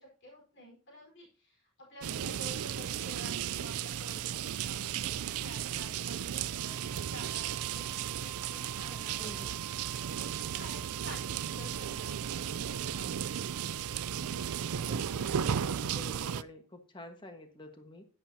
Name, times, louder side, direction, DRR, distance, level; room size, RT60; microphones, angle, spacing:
voice 1, 0.0-13.5, equal, 55° left, -3 dB, 4.3 m, -51 dB
sound 1, 2.0-16.4, right 9 dB, 85° right, 0.4 m, -35 dB
Wind instrument woodwind instrument, 6.5-15.1, right 8 dB, 15° right, 0.6 m, -51 dB
voice 2, 9.2-9.6 14.8-18.1, left 1 dB, 20° left, 6 dB, 1.3 m, -49 dB
10.5 x 10.0 x 2.7 m, 0.39 s
head